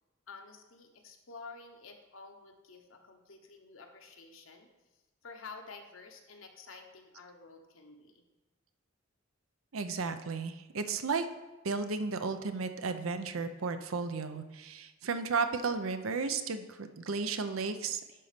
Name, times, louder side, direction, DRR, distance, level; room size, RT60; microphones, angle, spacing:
voice 1, 0.3-4.7 5.2-8.2, left 4 dB, 80° left, 3 dB, 1.1 m, -50 dB
voice 2, 9.7-11.3 11.6-18.0, right 4 dB, 85° right, 9 dB, 0.6 m, -34 dB
11.0 x 4.1 x 5.1 m, 1.1 s
head